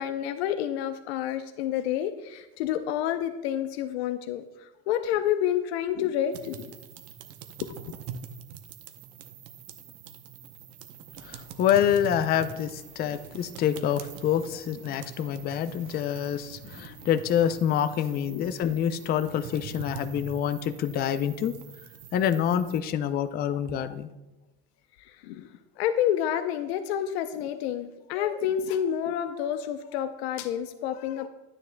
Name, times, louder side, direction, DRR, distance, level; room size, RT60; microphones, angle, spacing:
voice 1, 0.0-4.4 4.9-6.7 7.6-7.7 18.3-18.5 23.8-23.9 25.2-25.5 25.8-31.3, left 10 dB, 80° left, 9 dB, 0.6 m, -29 dB
sound 1, 6.3-22.8, right 7 dB, 50° right, 0.8 m, -44 dB
voice 2, 11.2-21.5 22.1-24.1, left 9 dB, 30° left, 12 dB, 0.4 m, -27 dB
10.5 x 9.6 x 2.2 m, 1.0 s
supercardioid pair, 115°, 31 cm